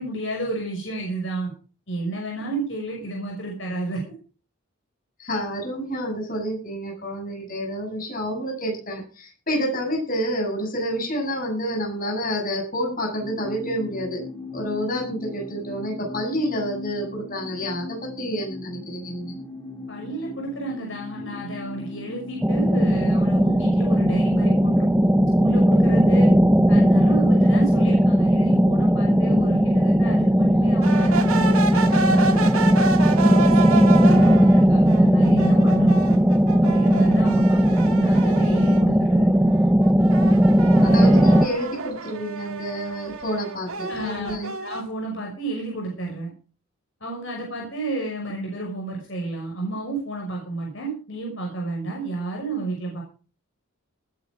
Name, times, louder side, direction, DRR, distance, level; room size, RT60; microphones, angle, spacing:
voice 1, 0.0-1.5 1.9-4.0 19.9-26.3 26.7-32.8 33.2-36.2 36.6-39.5 40.8-41.3 43.9-46.3 47.0-53.0, right 2 dB, 55° left, -1 dB, 5.9 m, -31 dB
voice 2, 5.2-14.2 14.5-19.4 40.8-44.5, equal, 40° left, 2 dB, 7.4 m, -29 dB
sound 1, 13.2-30.3, left 2 dB, 10° left, 2.6 m, -38 dB
sound 2, 22.4-41.5, equal, 5° right, 0.7 m, -17 dB
sound 3, 30.8-38.9 39.3-44.8, right 4 dB, 80° right, 1.9 m, -30 dB
19.0 x 10.0 x 5.1 m, 0.37 s
head